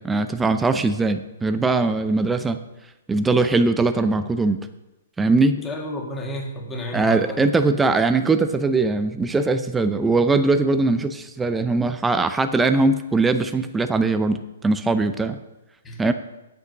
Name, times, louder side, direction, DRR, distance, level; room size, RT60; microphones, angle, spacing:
voice 1, 0.0-2.6 3.1-4.6 5.2-5.6 6.9-14.4 14.6-15.4 16.0-16.1, right 3 dB, 10° right, 9 dB, 0.6 m, -20 dB
voice 2, 5.6-7.4 15.8-16.0, left 1 dB, 15° left, 1 dB, 2.0 m, -31 dB
8.2 x 8.1 x 6.0 m, 0.99 s
hypercardioid pair, 135°, 0 cm